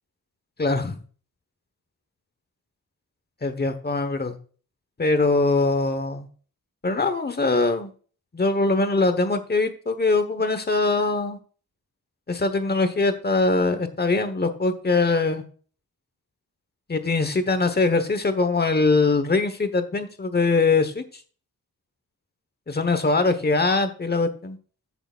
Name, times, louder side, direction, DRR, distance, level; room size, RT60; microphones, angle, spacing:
voice 1, 0.6-1.0 3.4-4.4 5.0-6.3 6.8-7.9 8.3-11.4 12.3-15.4 16.9-21.0 22.7-24.6, left 3 dB, 25° left, 9 dB, 1.2 m, -22 dB
14.0 x 6.8 x 2.5 m, 0.40 s
wide cardioid pair, 165°, 36 cm